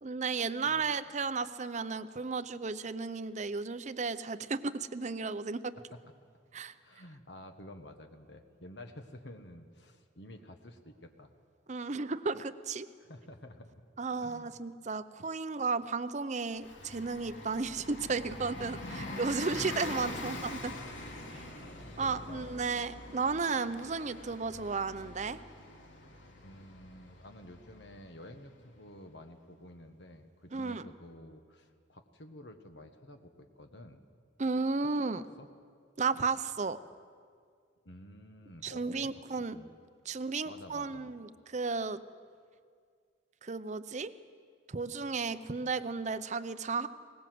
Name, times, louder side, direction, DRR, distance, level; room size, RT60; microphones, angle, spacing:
voice 1, 0.0-5.7 6.5-6.7 11.7-12.9 14.0-20.7 21.3-21.4 22.0-25.4 30.5-30.8 34.4-35.2 36.0-36.8 38.6-39.6 40.1-42.0 43.4-44.1 44.7-46.9, right 4 dB, 40° right, 13 dB, 0.6 m, -34 dB
voice 2, 6.8-11.3 13.0-13.8 14.2-14.6 18.9-19.1 21.9-22.6 26.4-34.0 35.2-35.5 37.8-39.1 39.5-39.7 40.4-41.1, left 1 dB, 65° left, 6 dB, 1.3 m, -51 dB
Bus, 16.5-28.8, left 2 dB, 80° left, 2.6 m, -44 dB
21.0 x 19.5 x 7.8 m, 2.1 s
head